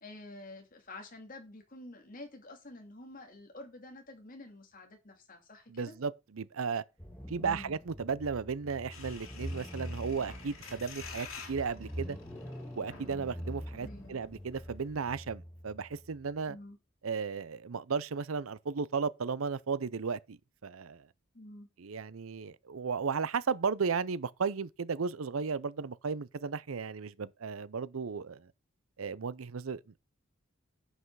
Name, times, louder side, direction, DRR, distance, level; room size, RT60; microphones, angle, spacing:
voice 1, 0.0-5.9 7.4-7.8 13.8-14.2 16.5-16.8 21.3-21.7, left 2 dB, 45° left, 2.5 m, -48 dB
voice 2, 5.7-6.8 7.3-12.2 12.8-16.6 17.0-21.1 21.8-28.5 29.0-29.8, right 5 dB, 90° right, 0.6 m, -35 dB
sound 1, 7.0-16.4, equal, 10° left, 1.8 m, -44 dB
sound 2, 8.9-13.9 14.3-14.4 14.5-14.8, left 5 dB, 85° left, 2.8 m, -50 dB
9.7 x 5.6 x 4.7 m
head